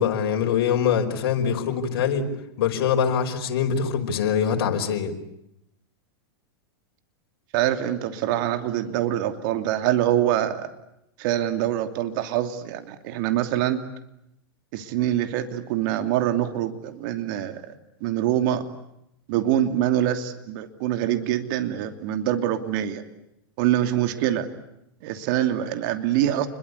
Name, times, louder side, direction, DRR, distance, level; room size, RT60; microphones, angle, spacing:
voice 1, 0.0-2.3 2.6-5.1, left 7 dB, 65° left, 3 dB, 5.3 m, -23 dB
voice 2, 7.5-10.7 11.2-13.8 14.7-17.7 18.0-18.6 19.3-23.0 23.6-24.5 25.0-26.5, right 12 dB, 55° right, 8 dB, 2.8 m, -24 dB
29.0 x 22.5 x 8.4 m, 0.81 s
hypercardioid pair, 125°, 13 cm